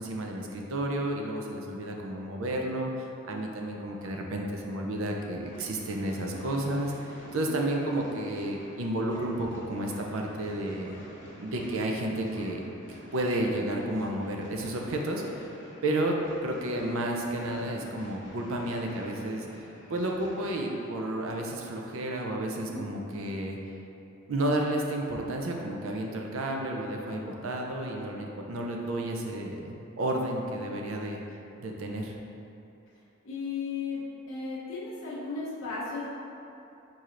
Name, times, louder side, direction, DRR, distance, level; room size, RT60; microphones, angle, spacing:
voice 1, 0.0-6.9 7.3-10.9 11.4-12.6 12.9-15.5 15.8-19.5 19.9-23.6 24.3-31.2 31.6-32.1, right 1 dB, 80° right, 1 dB, 0.5 m, -31 dB
sound 1, 3.6-4.2 4.6-4.8 5.5-5.7 6.3-6.5 7.3-7.5 8.0-8.3 9.0-9.3 9.8-10.1 10.8-11.0 11.5-11.7 12.3-12.5, left 3 dB, 25° left, 0.7 m, -55 dB
sound 2, 5.4-20.9, equal, 60° left, 1.2 m, -50 dB
voice 2, 33.2-36.1, left 4 dB, 80° left, -9 dB, 0.9 m, -35 dB
4.8 x 4.2 x 2.5 m, 2.8 s
head